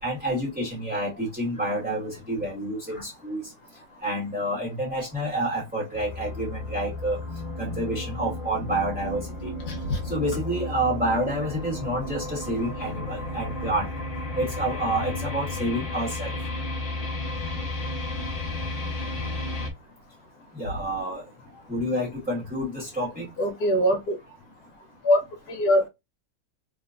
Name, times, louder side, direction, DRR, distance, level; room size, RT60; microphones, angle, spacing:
voice 1, 0.0-3.5 4.0-7.2 7.6-9.5 10.0-13.9 14.4-16.4 20.5-21.2 21.7-23.3, right 1 dB, 5° right, 1.8 m, -28 dB
sound 1, 5.9-19.7, left 2 dB, 45° left, 0.5 m, -33 dB
voice 2, 9.7-10.0 23.4-24.2 25.0-25.2 25.5-25.9, equal, 65° left, 1.7 m, -22 dB
3.7 x 3.4 x 2.6 m
omnidirectional pair, 1.9 m